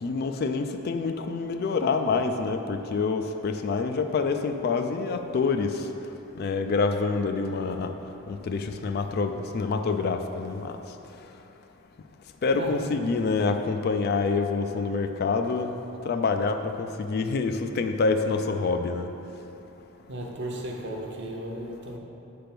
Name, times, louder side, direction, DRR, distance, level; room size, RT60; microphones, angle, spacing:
voice 1, 0.0-5.7 6.4-7.9 8.3-10.8 12.4-15.8 16.0-19.1, left 4 dB, 45° left, 7 dB, 0.3 m, -27 dB
voice 2, 20.1-22.0, right 1 dB, 55° right, 0 dB, 0.8 m, -35 dB
7.8 x 3.4 x 5.9 m, 3.0 s
head